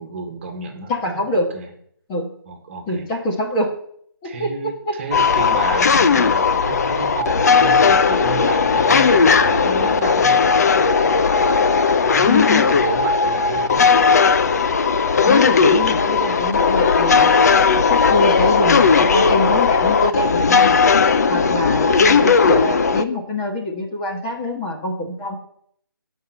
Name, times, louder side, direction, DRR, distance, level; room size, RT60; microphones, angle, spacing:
voice 1, 0.0-1.7 2.5-3.0 4.2-10.4 12.0-13.8, right 4 dB, 30° right, 5 dB, 1.8 m, -31 dB
voice 2, 0.9-1.5 2.1-2.3 2.9-3.7 4.2-5.0 12.3-12.7 15.3-17.3 17.9-20.8 21.3-25.4, left 1 dB, 15° left, 0 dB, 1.6 m, -24 dB
sound 1, 5.1-23.0, left 5 dB, 45° left, 0.7 m, -16 dB
12.0 x 5.6 x 8.0 m, 0.66 s
figure-of-eight pair, 155°, 12 cm